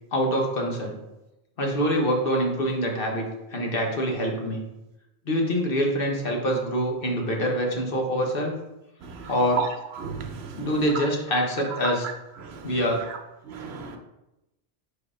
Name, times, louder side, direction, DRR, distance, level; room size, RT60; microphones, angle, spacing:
voice 1, 0.1-0.9 1.6-3.3 3.5-4.6 5.3-8.5 9.3-9.6 10.6-12.1 12.6-13.1, equal, 55° left, 1.3 m, -25 dB
voice 2, 10.0-10.7 11.8-11.9 12.4-12.7 13.5-14.0, right 6 dB, 70° right, 1.0 m, -33 dB
4.9 x 4.8 x 4.9 m
omnidirectional pair, 1.1 m